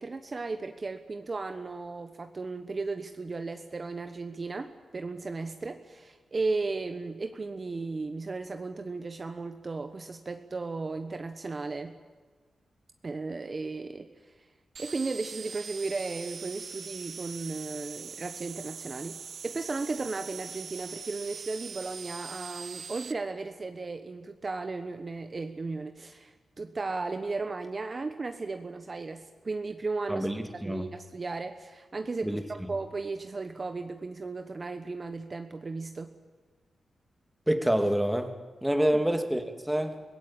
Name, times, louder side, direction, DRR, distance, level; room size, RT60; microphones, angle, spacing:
voice 1, 0.0-12.0 13.0-14.3 14.8-30.3 30.6-36.1 38.9-39.0, right 3 dB, 40° right, 7 dB, 1.2 m, -35 dB
sound 1, 14.8-23.1, right 6 dB, 65° right, 1.0 m, -42 dB
voice 2, 30.1-30.9 32.2-32.4 37.5-38.3 38.6-40.0, right 1 dB, 5° right, 6 dB, 2.3 m, -27 dB
24.5 x 17.0 x 8.8 m, 1.4 s
cardioid pair, 75°, 0 cm